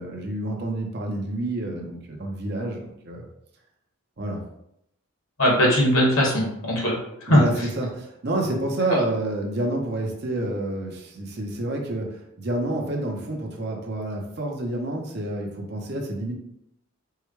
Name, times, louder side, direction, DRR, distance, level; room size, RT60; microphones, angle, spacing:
voice 1, 0.0-3.2 4.2-4.4 7.3-16.4, right 1 dB, 50° right, 0 dB, 0.7 m, -28 dB
voice 2, 5.4-6.9 7.2-7.7, equal, 70° left, -4 dB, 1.4 m, -20 dB
4.6 x 2.2 x 3.1 m, 0.77 s
head